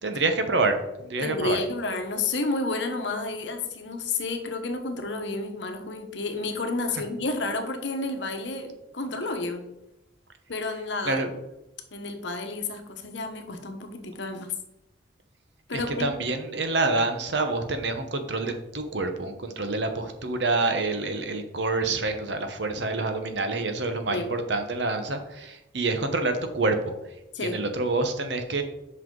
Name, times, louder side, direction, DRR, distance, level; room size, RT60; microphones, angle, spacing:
voice 1, 0.0-1.6 11.1-11.3 15.7-26.9 27.4-28.6, right 3 dB, 65° right, 7 dB, 1.0 m, -27 dB
voice 2, 1.2-9.6 10.5-11.2 11.9-14.5 15.7-16.1 24.1-24.3 27.3-27.6, left 3 dB, 70° left, 4 dB, 1.1 m, -31 dB
7.8 x 5.6 x 3.8 m, 0.90 s
head